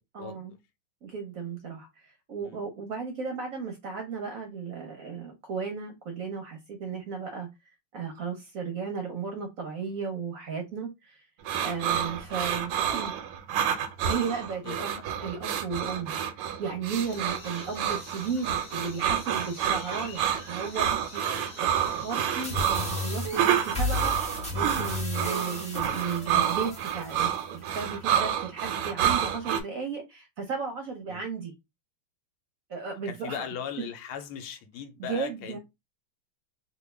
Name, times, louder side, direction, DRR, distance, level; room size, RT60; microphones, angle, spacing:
voice 1, 0.1-0.5 1.0-1.9 2.3-7.5 7.9-11.2 11.6-13.2 14.0-21.2 21.6-24.1 24.5-31.5 32.7-33.5 35.0-35.6, right 5 dB, 60° right, 0.9 m, -35 dB
sound 1, 11.4-29.6, right 9 dB, 90° right, 1.5 m, -29 dB
sound 2, 16.9-23.2, left 2 dB, 30° left, 1.4 m, -46 dB
voice 2, 21.2-21.5 31.1-31.2 33.1-35.6, left 8 dB, 85° left, 1.5 m, -38 dB
sound 3, 22.4-27.4, left 2 dB, 5° left, 0.7 m, -34 dB
3.4 x 2.3 x 3.3 m
omnidirectional pair, 2.3 m